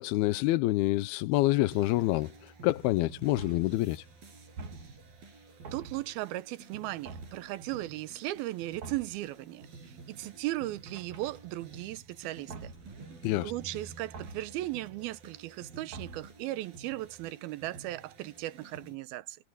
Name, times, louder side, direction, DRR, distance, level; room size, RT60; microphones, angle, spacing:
voice 1, 0.0-4.1 13.2-13.5, left 18 dB, 85° left, 2.6 m, -27 dB
sound 1, 1.7-19.0, right 4 dB, 70° right, 8.9 m, -51 dB
sound 2, 3.4-3.9 4.6-5.2 5.6-6.3 7.1-7.6 8.8-9.3 10.9-11.7 12.5-13.0 14.1-14.7 15.9-16.5, right 3 dB, 50° right, 3.9 m, -46 dB
voice 2, 5.7-12.7 13.4-19.4, right 17 dB, 85° right, 2.6 m, -37 dB
omnidirectional pair, 4.4 m